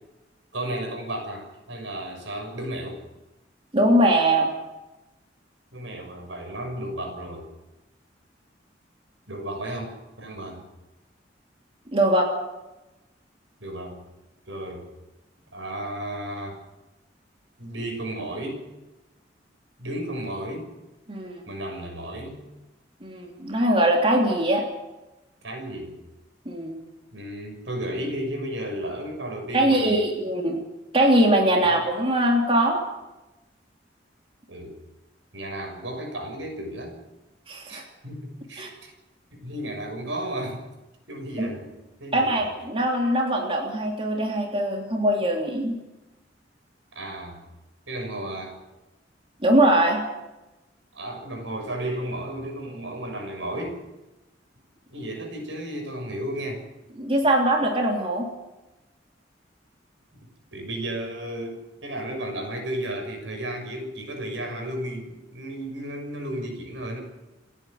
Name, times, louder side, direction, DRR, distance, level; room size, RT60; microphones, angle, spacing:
voice 1, 0.5-3.0 5.7-7.5 9.3-10.6 13.6-14.0 14.5-14.9 15.5-16.6 17.6-18.6 19.8-20.7 21.5-22.4 25.4-26.0 27.1-30.0 31.5-31.8 34.5-34.8 35.3-37.0 37.7-38.9 39.3-40.6 41.1-42.4 46.9-47.4 47.9-48.6 50.9-53.8 54.9-56.6 60.5-67.0, right 1 dB, 85° right, 3 dB, 6.5 m, -33 dB
voice 2, 3.7-4.5 11.9-12.3 21.1-21.4 23.0-24.6 26.4-26.8 29.5-30.6 30.9-32.8 37.5-37.8 38.6-38.7 41.4-41.5 42.1-45.7 49.4-50.0 57.0-58.3, right 1 dB, 30° right, 0 dB, 3.3 m, -21 dB
28.5 x 11.0 x 9.4 m, 1.0 s
head